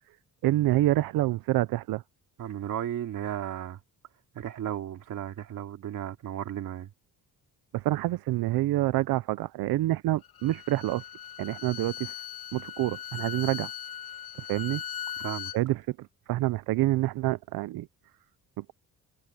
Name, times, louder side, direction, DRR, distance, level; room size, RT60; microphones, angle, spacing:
voice 1, 0.4-2.0 7.7-11.0 11.4-12.1 12.5-13.7 14.4-14.8 15.5-16.0 16.3-17.9 18.6-18.8, right 16 dB, 80° right, 0.6 m, -27 dB
voice 2, 2.4-3.8 4.3-6.9 15.2-15.5, right 11 dB, 60° right, 2.7 m, -34 dB
Bowed string instrument, 10.2-15.6, left 11 dB, 90° left, 5.8 m, -39 dB
cardioid pair, 175°, 35 cm